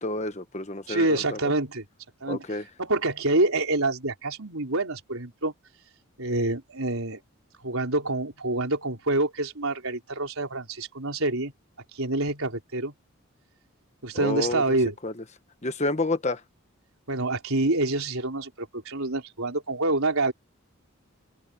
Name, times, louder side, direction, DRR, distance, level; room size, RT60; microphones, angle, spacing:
voice 1, 0.0-1.4 2.3-2.6 14.1-14.6 15.0-15.1 15.6-16.4, left 2 dB, 30° left, 1.2 m, -29 dB
voice 2, 0.9-1.8 2.2-2.4 2.8-5.5 6.2-7.2 7.6-11.5 11.9-12.9 14.0-14.9 17.1-20.3, right 2 dB, 70° right, 4.0 m, -27 dB
open air
head